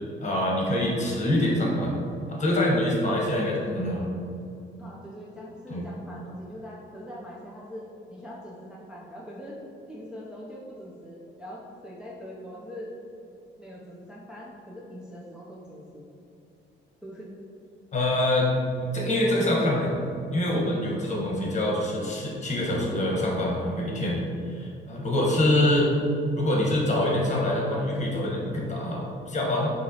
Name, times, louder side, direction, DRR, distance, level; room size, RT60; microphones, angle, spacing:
voice 1, 0.2-2.0 2.3-4.1 5.7-5.9 17.9-18.5 18.9-20.0 20.3-24.2 24.5-25.9 26.4-29.7, left 1 dB, 35° left, -3 dB, 1.2 m, -25 dB
voice 2, 4.8-9.6 9.9-12.9 13.6-16.0 17.0-17.3 25.1-26.2, equal, 5° right, -5 dB, 0.5 m, -42 dB
5.2 x 3.0 x 2.8 m, 2.6 s
cardioid pair, 90°, 20 cm